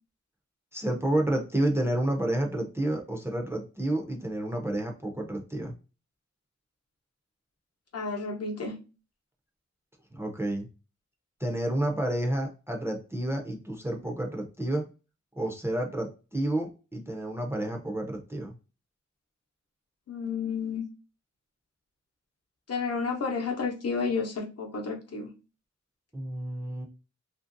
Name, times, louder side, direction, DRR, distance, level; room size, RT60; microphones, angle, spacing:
voice 1, 0.7-5.7 10.1-10.7 11.4-14.8 15.4-18.5 26.1-26.9, right 1 dB, 10° right, 0.5 m, -30 dB
voice 2, 7.9-8.7 20.1-20.8 22.7-25.3, left 4 dB, 55° left, 0.8 m, -31 dB
2.9 x 2.6 x 2.5 m
wide cardioid pair, 140°, 29 cm